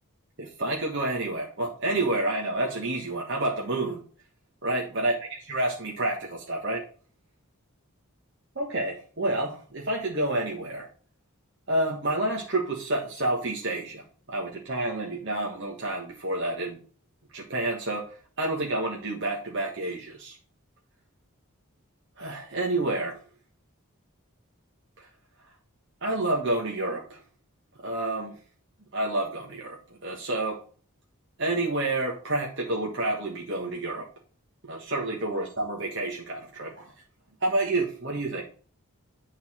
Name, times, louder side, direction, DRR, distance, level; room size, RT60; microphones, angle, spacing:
voice 1, 0.4-4.0 4.6-6.8 8.5-10.9 11.7-16.8 17.3-18.1 18.4-20.4 22.2-23.2 25.0-25.1 26.0-27.2 27.8-28.3 28.9-30.6 31.4-34.1 34.6-36.9 37.4-38.4, right 2 dB, 55° right, -1 dB, 1.4 m, -29 dB
8.6 x 4.0 x 4.3 m, 0.41 s
head